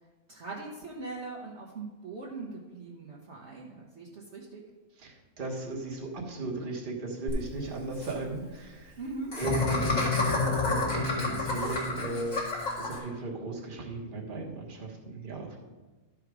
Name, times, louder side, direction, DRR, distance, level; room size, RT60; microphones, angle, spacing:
voice 1, 0.3-4.6 9.0-9.3 11.8-12.2, right 3 dB, 55° right, -4 dB, 1.3 m, -41 dB
voice 2, 5.0-9.0 9.3-15.6, right 3 dB, 35° right, -1 dB, 1.4 m, -37 dB
Laughter, 7.3-7.4 7.6-7.7 7.9-8.1 9.3-13.0, left 2 dB, 65° left, 2.5 m, -31 dB
sound 1, 9.4-12.2, left 4 dB, 40° left, 0.5 m, -31 dB
12.0 x 5.0 x 4.7 m, 1.2 s
omnidirectional pair, 1.5 m